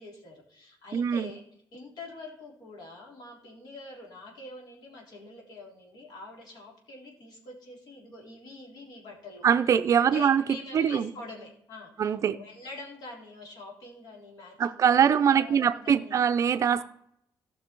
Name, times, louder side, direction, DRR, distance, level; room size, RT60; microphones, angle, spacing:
voice 1, 0.0-1.4 1.7-9.5 9.9-16.2 16.8-16.9, left 2 dB, 60° left, -1 dB, 3.6 m, -45 dB
voice 2, 0.9-1.3 9.4-10.4 10.7-11.1 12.0-12.4 14.6-16.8, right 8 dB, 40° right, 10 dB, 0.5 m, -23 dB
16.5 x 6.1 x 4.5 m, 0.72 s
cardioid pair, 170°, 8 cm